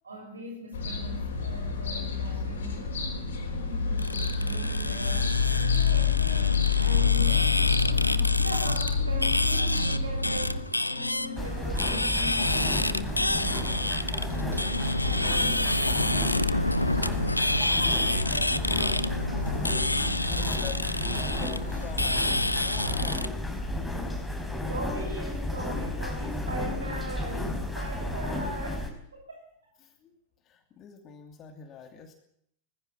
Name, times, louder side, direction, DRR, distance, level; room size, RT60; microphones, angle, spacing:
voice 1, 0.0-3.2 3.5-5.3 5.5-14.0 14.4-19.3 24.7-29.4, equal, 75° right, 2 dB, 6.4 m, -40 dB
sound 1, 0.7-10.6, left 6 dB, 65° left, 4.7 m, -27 dB
sound 2, 4.0-23.3, left 1 dB, 85° left, 0.7 m, -28 dB
sound 3, 11.4-28.9, left 1 dB, 5° left, 4.8 m, -32 dB
voice 2, 20.0-22.3 22.6-23.5 29.8-30.1 30.4-32.1, left 7 dB, 30° left, 5 dB, 2.7 m, -46 dB
19.5 x 15.5 x 9.6 m, 0.72 s
figure-of-eight pair, 90°, 0 cm